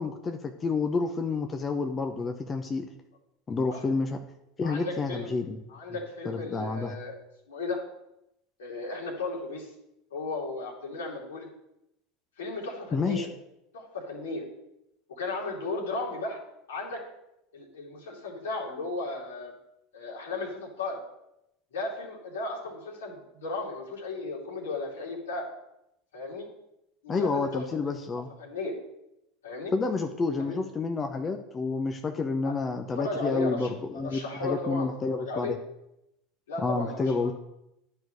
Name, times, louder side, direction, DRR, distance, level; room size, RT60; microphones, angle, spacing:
voice 1, 0.0-2.9 3.5-4.2 4.6-5.6 6.2-6.9 12.9-13.3 27.1-28.3 29.7-35.6 36.6-37.3, left 4 dB, 25° left, 5 dB, 0.8 m, -29 dB
voice 2, 4.6-5.3 5.7-7.1 7.5-7.8 8.6-9.7 10.1-11.5 12.4-13.3 13.7-14.5 15.1-16.4 16.7-17.0 17.5-19.5 19.9-21.0 21.7-25.5 26.1-26.5 27.0-27.6 28.4-28.7 29.4-29.7 30.2-30.6 32.4-32.6 33.0-34.9 35.2-35.5 36.5-37.3, left 3 dB, 75° left, -2 dB, 2.7 m, -35 dB
10.5 x 4.7 x 6.6 m, 0.85 s
hypercardioid pair, 80°, 0 cm